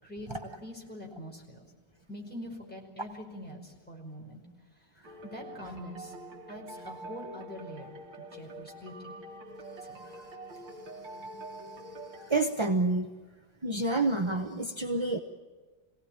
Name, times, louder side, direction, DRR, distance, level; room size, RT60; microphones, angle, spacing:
voice 1, 0.6-1.7 2.1-4.4 5.3-6.1 6.5-9.2 9.8-10.0, equal, 5° left, -1 dB, 4.9 m, -44 dB
sound 1, 5.0-12.4, right 1 dB, 80° right, 2.7 m, -45 dB
voice 2, 12.1-13.1 13.6-15.2, right 2 dB, 25° right, 4 dB, 0.7 m, -29 dB
25.0 x 17.5 x 8.8 m, 1.4 s
omnidirectional pair, 2.0 m